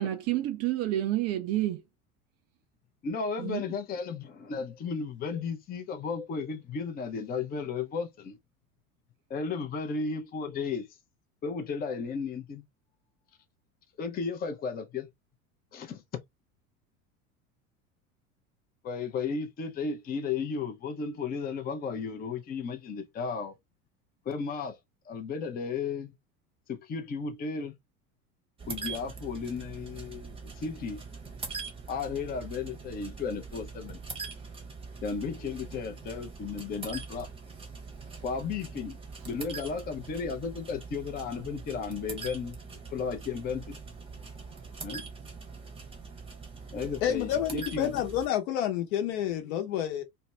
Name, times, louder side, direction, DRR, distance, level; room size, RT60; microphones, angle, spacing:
voice 1, 0.0-1.8 3.4-3.6, right 14 dB, 35° right, 0.5 m, -29 dB
voice 2, 3.0-8.4 9.3-10.9 11.4-12.6 14.0-15.1 15.7-16.0 18.8-23.5 24.3-24.8 25.1-26.1 26.7-27.7 28.7-31.0 31.9-34.0 35.0-37.3 38.2-39.0 39.2-42.6 42.9-43.8 44.2-44.5 44.8-45.1 46.7-48.0, left 5 dB, 20° left, 0.6 m, -34 dB
sound 1, 28.6-48.3, right 4 dB, 10° right, 0.8 m, -43 dB
voice 3, 47.0-50.0, left 10 dB, 60° left, 1.0 m, -29 dB
2.5 x 2.2 x 3.1 m
figure-of-eight pair, 75°, 44 cm